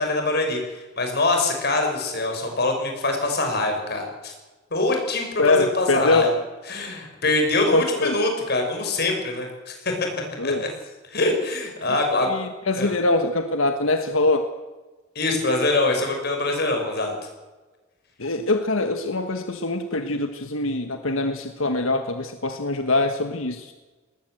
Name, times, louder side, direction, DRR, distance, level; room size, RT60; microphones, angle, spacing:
voice 1, 0.0-4.3 4.7-6.3 6.7-9.9 10.4-10.7 11.1-12.3 12.7-12.9 15.1-17.1, left 2 dB, 50° left, 3 dB, 6.2 m, -24 dB
voice 2, 5.4-6.3 7.7-8.2 10.4-10.6 12.2-14.5 18.2-23.7, left 2 dB, 80° left, 7 dB, 1.5 m, -23 dB
20.0 x 20.0 x 8.0 m, 1.2 s
head